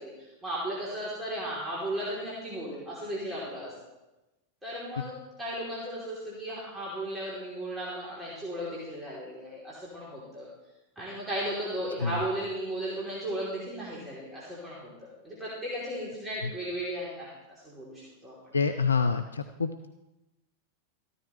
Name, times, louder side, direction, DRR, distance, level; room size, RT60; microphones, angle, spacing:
voice 1, 0.0-3.7 4.6-10.5 10.9-17.3 17.6-18.5, right 1 dB, 15° right, -7 dB, 3.4 m, -35 dB
voice 2, 18.5-19.9, left 5 dB, 75° left, 8 dB, 0.5 m, -27 dB
14.0 x 12.5 x 3.3 m, 0.99 s
figure-of-eight pair, 90°, 0 cm